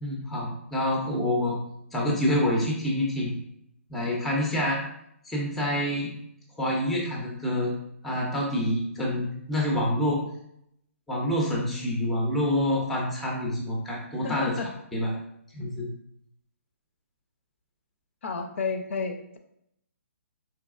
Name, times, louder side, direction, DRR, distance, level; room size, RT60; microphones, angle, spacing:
voice 1, 0.0-1.6 1.9-3.3 3.9-4.8 5.2-6.1 6.6-7.7 8.0-10.2 11.1-14.5 14.9-15.2 15.5-15.9, left 1 dB, ahead, -2 dB, 0.5 m, -27 dB
voice 2, 14.2-14.7 18.2-19.4, left 5 dB, 60° left, 5 dB, 0.5 m, -31 dB
4.0 x 2.8 x 2.4 m, 0.75 s
hypercardioid pair, 160°, 8 cm